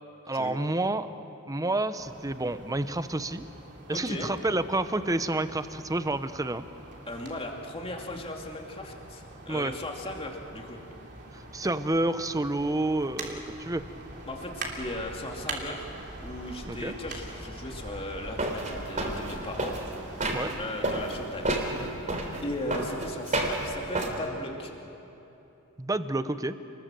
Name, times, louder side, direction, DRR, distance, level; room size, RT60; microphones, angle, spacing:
voice 1, 0.3-1.1 1.5-3.5 3.9-6.6 9.5-9.7 11.5-13.8 16.7-16.9 20.3-20.5 25.8-26.6, right 2 dB, 15° right, 11 dB, 0.8 m, -29 dB
sound 1, 2.0-22.0, right 2 dB, 50° right, 3.2 m, -43 dB
voice 2, 3.9-4.3 7.1-10.8 14.3-15.9 16.2-21.7 22.4-24.7, left 1 dB, 25° left, 1 dB, 2.5 m, -37 dB
sound 2, 18.4-20.5 20.8-24.1, right 2 dB, 35° right, 3.5 m, -30 dB
29.0 x 20.5 x 7.7 m, 3.0 s
head